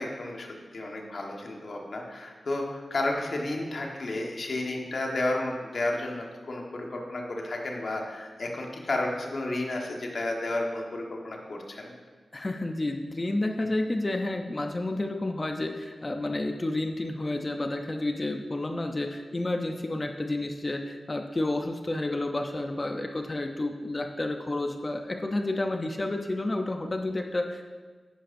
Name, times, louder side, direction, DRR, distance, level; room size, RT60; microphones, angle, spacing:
voice 1, 0.0-11.9, left 2 dB, 55° left, 0 dB, 1.3 m, -32 dB
voice 2, 12.3-27.6, left 2 dB, 25° left, 4 dB, 0.5 m, -30 dB
10.5 x 10.0 x 2.6 m, 1.4 s
wide cardioid pair, 140°, 0 cm